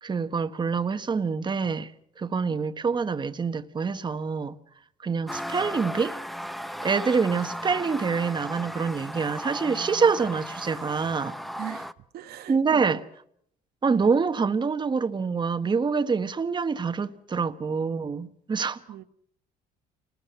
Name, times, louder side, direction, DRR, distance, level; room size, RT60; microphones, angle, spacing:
voice 1, 0.0-1.9 2.2-4.6 5.0-6.2 6.8-11.3 12.5-13.0 13.8-18.8, right 5 dB, 25° right, 1.4 m, -26 dB
sound 1, 5.3-11.9, equal, ahead, 0.9 m, -36 dB
voice 2, 11.6-13.0 18.9-19.0, right 12 dB, 70° right, 1.2 m, -40 dB
28.5 x 20.5 x 5.9 m
cardioid pair, 110°, 17 cm